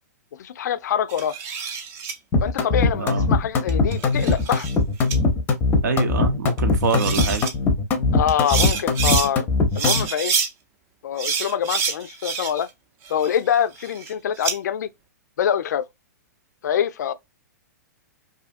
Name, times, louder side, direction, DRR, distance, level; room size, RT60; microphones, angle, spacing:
voice 1, 0.4-1.3 2.4-4.7 8.1-9.5 9.7-10.3 11.0-12.7 13.1-14.9 15.4-15.9 16.6-17.1, left 9 dB, 75° left, 0.4 m, -24 dB
sound 1, 1.1-2.1 3.7-4.7 5.1-5.2 6.6-6.7 6.9-7.5 8.3-9.3 9.7-10.5 11.2-12.7 13.0-14.5, right 6 dB, 30° right, 0.5 m, -27 dB
sound 2, 2.3-10.1, left 3 dB, 20° left, 0.6 m, -20 dB
voice 2, 5.8-7.4, right 4 dB, 75° right, 0.7 m, -24 dB
2.6 x 2.4 x 2.4 m
hypercardioid pair, 140°, 9 cm